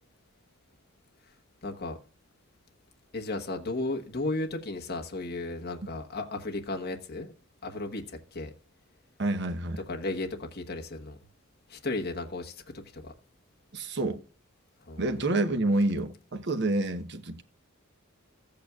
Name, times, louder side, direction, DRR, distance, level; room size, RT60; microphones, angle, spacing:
voice 1, 1.6-2.0 3.1-7.3 7.6-8.5 9.9-11.2 11.7-12.5 12.9-13.1 14.9-15.0, left 2 dB, 45° left, 1.2 m, -34 dB
voice 2, 9.2-9.8 13.7-14.2 15.0-17.4, right 2 dB, 55° right, 1.0 m, -28 dB
15.0 x 8.6 x 2.4 m
head